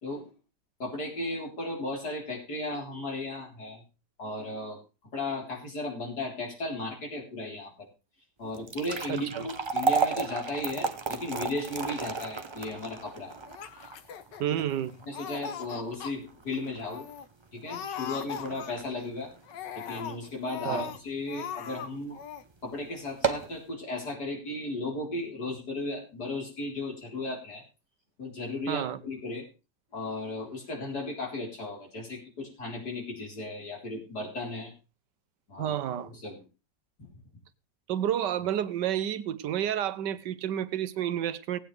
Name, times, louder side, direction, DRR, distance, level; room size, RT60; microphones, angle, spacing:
voice 1, 0.8-3.8 4.2-4.8 5.1-7.9 8.4-13.3 15.1-17.1 17.5-19.3 19.7-22.2 22.6-27.6 28.2-29.5 29.9-34.7 35.5-35.7 36.1-36.4, left 2 dB, 65° left, 4.5 m, -35 dB
sound 1, 8.5-20.8 21.2-21.3 22.0-22.2 22.5-22.6 23.0-23.6, right 4 dB, 40° right, 0.3 m, -33 dB
voice 2, 9.1-9.5 14.4-14.9 20.6-20.9 28.7-29.0 35.6-36.1 37.9-41.6, right 10 dB, 85° right, 1.4 m, -30 dB
Laughter, 13.5-14.8 15.1-16.1 16.5-16.6 16.9-17.3 17.7-19.0 19.5-21.0 21.3-21.9 22.1-22.4, left 8 dB, 90° left, 1.6 m, -39 dB
18.0 x 8.9 x 3.3 m
omnidirectional pair, 1.9 m